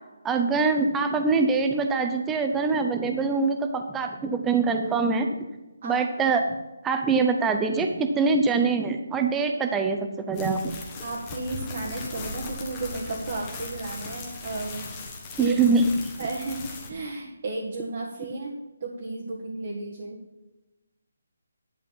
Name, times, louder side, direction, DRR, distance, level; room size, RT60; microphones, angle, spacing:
voice 1, 0.2-5.3 5.8-6.4 6.8-10.0 10.3-10.6 15.4-15.9, right 4 dB, 10° right, 5 dB, 0.6 m, -23 dB
sound 1, 10.3-16.9, left 3 dB, 15° left, 1.3 m, -38 dB
voice 2, 11.0-14.9 15.4-15.6 16.2-18.5 18.8-20.2, right 3 dB, 45° right, -3 dB, 1.7 m, -33 dB
11.0 x 5.0 x 7.3 m, 1.1 s
hypercardioid pair, 170°, 0 cm